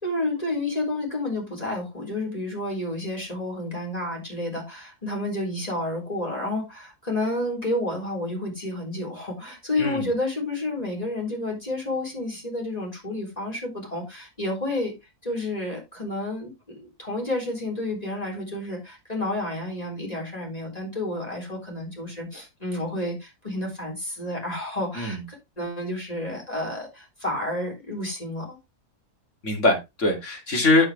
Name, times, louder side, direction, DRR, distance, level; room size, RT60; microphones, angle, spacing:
voice 1, 0.0-14.9 15.2-28.6, left 1 dB, 25° left, 4.2 m, -30 dB
voice 2, 9.8-10.1 24.9-25.2 29.4-30.9, left 2 dB, 55° left, 3.0 m, -22 dB
8.9 x 7.8 x 3.3 m
omnidirectional pair, 1.6 m